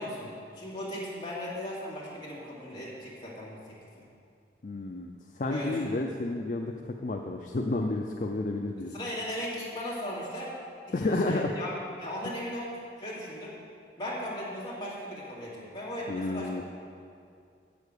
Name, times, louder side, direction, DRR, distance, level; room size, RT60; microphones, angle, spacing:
voice 1, 0.0-4.1 5.5-6.0 8.9-10.5 10.9-11.7 12.0-13.6 14.0-16.6, left 1 dB, 25° left, -7 dB, 2.3 m, -37 dB
voice 2, 4.6-8.9 10.9-11.5 16.1-16.6, left 2 dB, 45° left, 2 dB, 0.4 m, -31 dB
8.2 x 6.9 x 6.5 m, 2.4 s
head